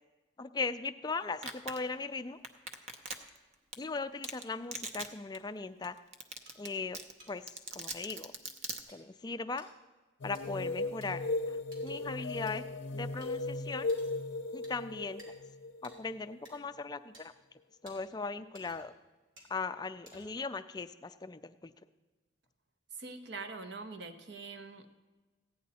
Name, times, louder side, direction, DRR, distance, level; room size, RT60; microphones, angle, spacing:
voice 1, 0.4-2.4 3.8-6.0 6.6-7.0 7.3-7.4 7.7-8.3 8.9-9.7 10.2-11.2 11.5-11.6 11.8-12.6 12.9-13.9 14.5-15.2 15.8-17.3 17.8-18.9 19.5-21.7, left 4 dB, 20° left, 10 dB, 0.3 m, -38 dB
Domestic sounds home sounds, 1.4-1.8 2.4-3.4 3.7-3.8 4.2-4.4 4.7-5.1 5.3-5.4 5.8-5.9 6.1-6.7 6.9-8.8, right 3 dB, 35° right, 0.7 m, -39 dB
sound 1, 6.5-6.6 7.2-7.3 8.0-8.2 8.9-9.0 9.6-9.7 10.3-10.4 11.0-11.1 11.7-12.0 12.5-12.6 13.2-13.3 13.9-14.2 14.6-14.8 15.2-15.3 15.8-16.0 16.5-16.6 17.1-17.2 17.9-18.0 18.5-18.9 19.4-19.5 20.1-20.5, right 1 dB, 85° right, 2.9 m, -56 dB
sound 2, 10.2-16.6, left 2 dB, 65° left, 0.6 m, -37 dB
voice 2, 22.9-24.9, right 4 dB, 60° right, 8 dB, 0.9 m, -44 dB
15.0 x 9.5 x 4.1 m, 1.3 s
head